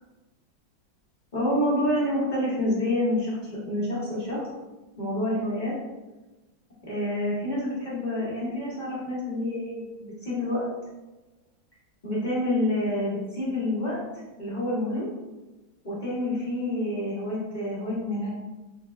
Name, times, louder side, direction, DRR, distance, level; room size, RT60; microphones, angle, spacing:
voice 1, 1.3-4.4 5.0-5.7 6.8-10.7 12.0-14.0 14.4-15.1 15.8-18.3, left 1 dB, 25° left, -8 dB, 1.3 m, -28 dB
5.4 x 3.9 x 2.3 m, 1.1 s
omnidirectional pair, 2.2 m